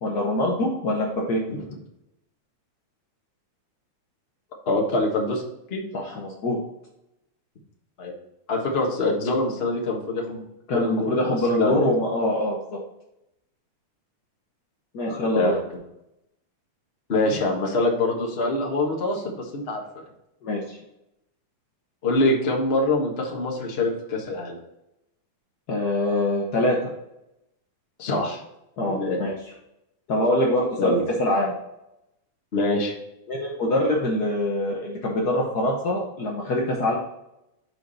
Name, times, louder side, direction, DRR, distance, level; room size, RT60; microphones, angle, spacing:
voice 1, 0.0-1.4 5.9-6.6 10.7-12.6 14.9-15.5 20.4-20.8 25.7-26.8 28.8-29.3 30.1-31.5 33.3-36.9, left 1 dB, 80° left, -2 dB, 0.8 m, -24 dB
voice 2, 4.7-5.4 5.7-5.8 8.0-8.1 8.5-10.5 10.7-11.1 11.6-11.8 15.1-15.6 17.1-19.8 22.0-24.6 28.0-28.4 28.8-29.2 30.8-31.0 32.5-32.9, left 2 dB, 40° left, -2 dB, 0.9 m, -24 dB
6.6 x 4.8 x 4.1 m, 0.85 s
omnidirectional pair, 3.4 m